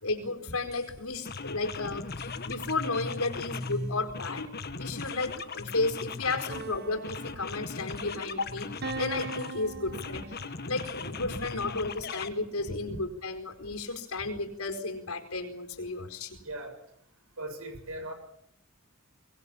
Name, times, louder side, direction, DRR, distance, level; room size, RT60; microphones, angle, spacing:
voice 1, 0.0-10.3 10.7-16.4, left 3 dB, 80° left, 6 dB, 4.6 m, -33 dB
sound 1, 0.7-0.9 1.2-3.8 4.1-6.7 7.0-9.6 9.9-12.3, left 4 dB, 50° left, 1.7 m, -39 dB
sound 2, 6.5-8.1 8.8-10.8, right 4 dB, 50° right, 1.5 m, -41 dB
voice 2, 16.4-16.8 17.4-18.1, right 1 dB, 75° right, 7 dB, 7.2 m, -38 dB
24.0 x 21.0 x 8.7 m, 0.73 s
head